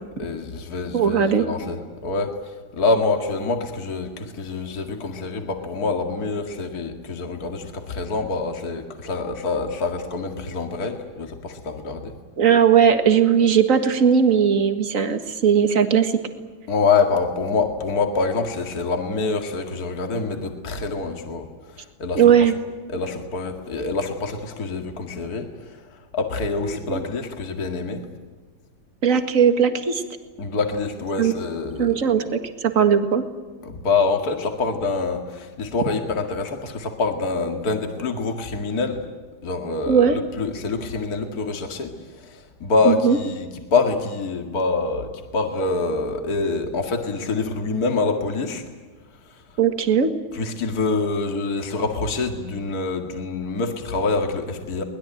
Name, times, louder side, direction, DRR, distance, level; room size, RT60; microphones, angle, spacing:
voice 1, 0.2-12.1 16.7-22.5 22.9-25.8 26.1-28.0 30.4-32.0 33.6-39.0 39.4-48.6 49.3-49.4 50.3-54.8, left 4 dB, 50° left, 4 dB, 2.6 m, -26 dB
voice 2, 0.9-1.4 12.4-16.1 22.2-22.5 26.9-27.0 29.0-30.0 31.2-31.3 31.8-33.2 39.9-40.2 42.9-43.2 49.6-50.1, right 7 dB, 45° right, 7 dB, 2.1 m, -18 dB
23.5 x 20.5 x 9.1 m, 1.4 s
omnidirectional pair, 2.1 m